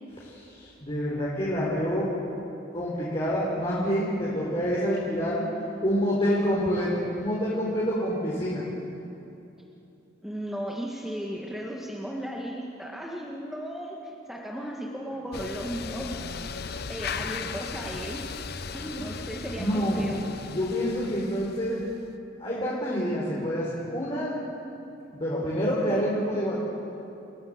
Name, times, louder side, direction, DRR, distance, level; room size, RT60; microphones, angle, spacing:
voice 1, 0.3-2.1 2.7-5.5 5.8-8.6 19.6-20.1 20.5-21.9 22.4-24.3 25.1-26.5, equal, 30° left, -7 dB, 4.4 m, -27 dB
voice 2, 10.2-14.0 14.3-16.3 16.9-18.2 18.7-20.3, equal, ahead, -3 dB, 1.7 m, -35 dB
sound 1, 15.3-22.2, left 5 dB, 55° left, 0.9 m, -37 dB
28.5 x 15.5 x 8.0 m, 2.9 s
head